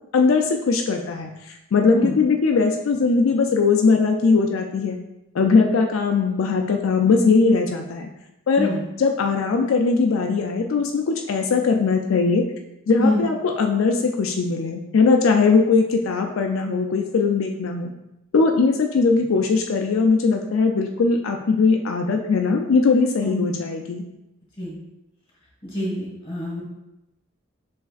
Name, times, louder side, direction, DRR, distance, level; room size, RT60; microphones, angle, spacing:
voice 1, 0.1-1.3 1.7-5.0 5.3-8.1 8.5-8.7 9.0-12.4 12.9-17.9 18.3-24.0, left 4 dB, 85° left, 3 dB, 0.4 m, -20 dB
voice 2, 25.6-26.6, left 1 dB, 25° left, -4 dB, 1.7 m, -25 dB
6.4 x 3.3 x 2.4 m, 0.92 s
head